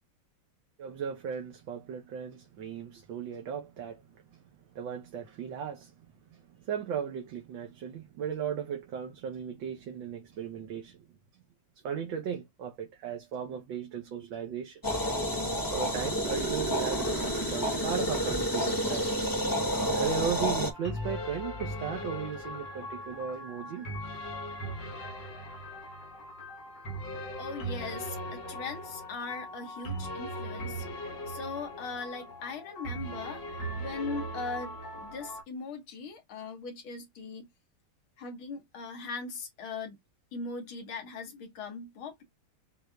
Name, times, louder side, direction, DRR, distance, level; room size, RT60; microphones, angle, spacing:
voice 1, 0.8-4.0 4.3-4.4 4.8-5.9 6.3-11.1 11.8-14.8 15.7-19.1 19.8-23.9, right 7 dB, 70° right, 1.7 m, -36 dB
sound 1, 14.8-20.7, equal, 25° left, 0.4 m, -29 dB
sound 2, 19.9-35.4, equal, 60° left, 2.0 m, -39 dB
voice 2, 27.4-37.5 38.2-40.0 40.3-42.2, left 4 dB, 80° left, 2.1 m, -40 dB
6.5 x 2.7 x 2.2 m
omnidirectional pair, 2.2 m